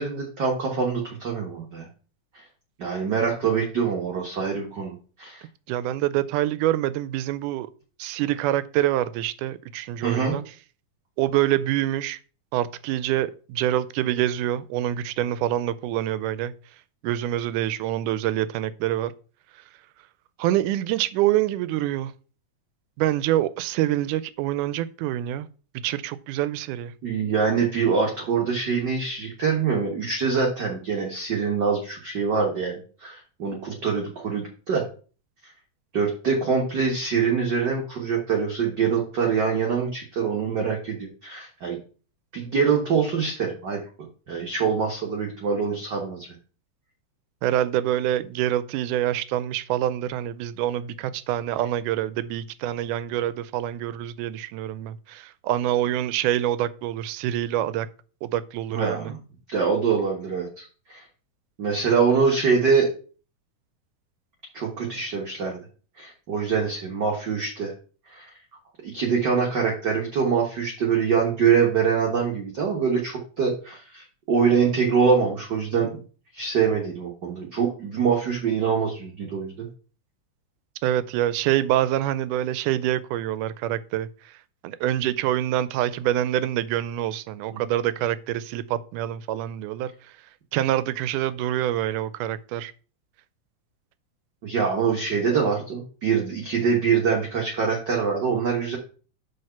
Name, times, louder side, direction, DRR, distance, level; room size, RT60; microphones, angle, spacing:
voice 1, 0.0-1.9 2.3-2.4 2.8-5.4 10.0-10.4 27.0-34.8 35.9-41.8 42.3-46.3 58.7-59.2 59.5-61.0 61.6-62.9 64.5-65.6 66.0-67.7 68.1-68.4 68.8-75.9 76.3-79.7 87.5-87.6 94.4-98.8, right 6 dB, 50° right, 1.3 m, -24 dB
voice 2, 5.7-7.7 8.0-10.4 11.2-12.2 12.5-16.5 17.0-19.1 20.4-22.1 23.0-25.5 25.8-26.9 47.4-57.9 58.2-59.1 80.8-84.1 84.6-89.9 90.5-92.7, right 13 dB, 85° right, 2.1 m, -26 dB
6.4 x 4.7 x 5.7 m
omnidirectional pair, 3.6 m